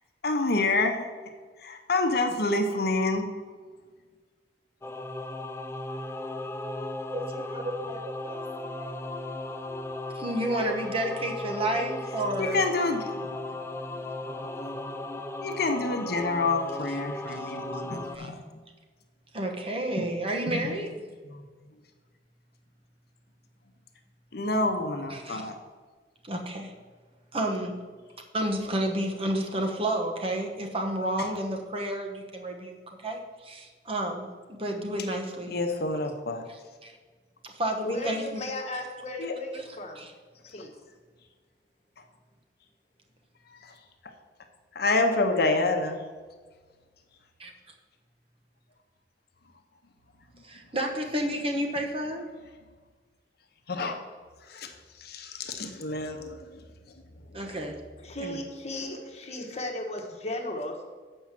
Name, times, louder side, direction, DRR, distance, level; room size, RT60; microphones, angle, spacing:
voice 1, 0.2-1.1 1.6-3.3 12.4-13.3 15.4-18.5 20.0-20.1 20.5-20.7 21.2-21.5 24.3-25.6 31.2-31.3 35.4-36.5 39.2-39.3 40.4-40.6 43.5-43.8 44.7-46.0 50.3-50.4 53.7-54.0 54.4-56.6 57.4-57.5, left 2 dB, 60° left, 5 dB, 0.9 m, -28 dB
Singing / Musical instrument, 4.8-18.2, left 1 dB, 15° left, 0.5 m, -36 dB
voice 2, 7.1-9.0 10.1-12.6 17.3-17.5 18.1-18.3 19.3-20.9 25.1-25.4 26.2-26.7 27.3-27.8 28.3-32.8 33.0-35.5 36.8-36.9 37.4-38.5 40.0-40.1 47.4-47.5 50.4-52.3 57.3-57.7 58.2-58.4, right 1 dB, 35° right, 2 dB, 1.1 m, -31 dB
voice 3, 37.8-40.0 40.5-40.7 57.5-57.6 58.0-60.8, left 1 dB, 40° left, 2 dB, 1.4 m, -35 dB
7.2 x 5.5 x 7.4 m, 1.4 s
head